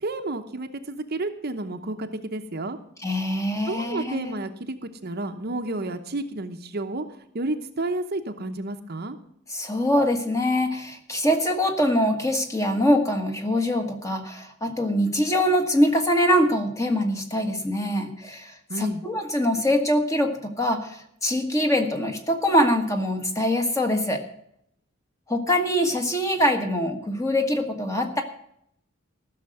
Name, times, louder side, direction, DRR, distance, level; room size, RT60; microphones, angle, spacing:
voice 1, 0.0-2.8 3.7-7.0 7.3-9.2 18.7-19.0, right 2 dB, 50° right, 7 dB, 0.9 m, -31 dB
voice 2, 3.0-4.3 9.5-24.2 25.3-28.2, equal, 15° left, 4 dB, 1.4 m, -23 dB
15.0 x 6.6 x 7.8 m, 0.71 s
head